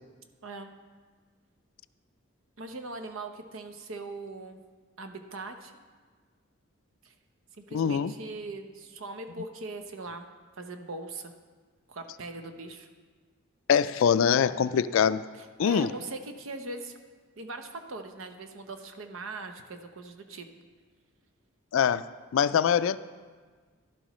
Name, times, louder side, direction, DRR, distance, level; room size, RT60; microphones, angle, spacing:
voice 1, 2.6-4.6 5.0-5.7 7.0-7.1 7.6-10.3 10.6-11.3 11.9-12.9 15.4-16.9 17.4-20.5, right 3 dB, 75° right, 0.8 m, -40 dB
voice 2, 7.7-8.1 13.7-15.2 15.6-15.9 21.7-22.0 22.3-23.0, left 7 dB, 70° left, 0.3 m, -23 dB
11.5 x 11.5 x 3.1 m
head